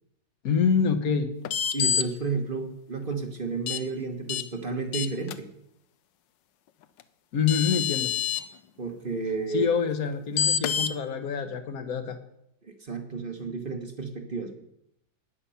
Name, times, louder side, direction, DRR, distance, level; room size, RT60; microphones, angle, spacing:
voice 1, 0.4-1.3 7.3-8.1 9.5-12.2, left 6 dB, 55° left, 9 dB, 1.4 m, -26 dB
sound 1, 1.4-2.0 3.7-3.8 4.3-4.4 4.9-5.3 7.0-7.1 7.5-8.4 10.4-10.9, left 8 dB, 75° left, 1.4 m, -26 dB
voice 2, 1.7-5.5 8.8-9.7 12.6-14.6, right 4 dB, 30° right, 5 dB, 1.3 m, -32 dB
12.5 x 9.8 x 5.7 m, 0.78 s
omnidirectional pair, 2.0 m